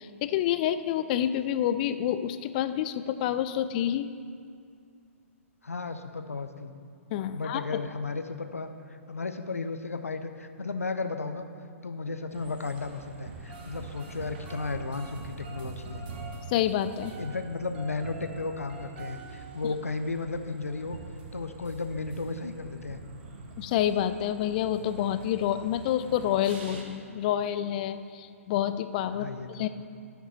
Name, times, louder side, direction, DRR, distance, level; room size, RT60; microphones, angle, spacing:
voice 1, 0.0-4.1 7.1-7.6 16.5-17.1 19.6-19.7 23.6-29.7, left 11 dB, 35° left, 12 dB, 0.4 m, -28 dB
voice 2, 5.6-6.7 7.3-11.5 11.8-16.0 17.2-21.0 21.3-23.0 29.1-29.7, left 3 dB, 80° left, 8 dB, 0.7 m, -34 dB
sound 1, 12.3-26.8, right 3 dB, 45° right, 1.2 m, -44 dB
14.0 x 6.0 x 4.1 m, 2.3 s
figure-of-eight pair, 120°, 8 cm